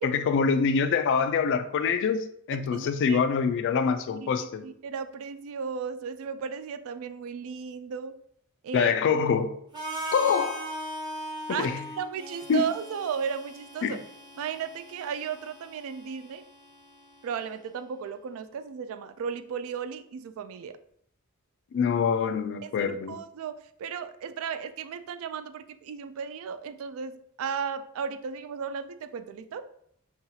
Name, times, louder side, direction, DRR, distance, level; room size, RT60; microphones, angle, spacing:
voice 1, 0.0-4.6 8.7-9.5 10.1-10.7 11.5-11.8 12.5-12.6 13.8-14.0 21.7-23.2, left 6 dB, 55° left, 0.3 m, -25 dB
voice 2, 2.5-3.2 4.2-4.3 4.6-8.1 8.6-8.9 11.5-14.1 14.4-16.4 17.2-20.8 22.6-23.5 23.8-29.6, right 6 dB, 65° right, 0.3 m, -35 dB
Harmonica, 9.7-17.6, right 1 dB, 20° right, 0.7 m, -40 dB
5.5 x 2.3 x 2.7 m
head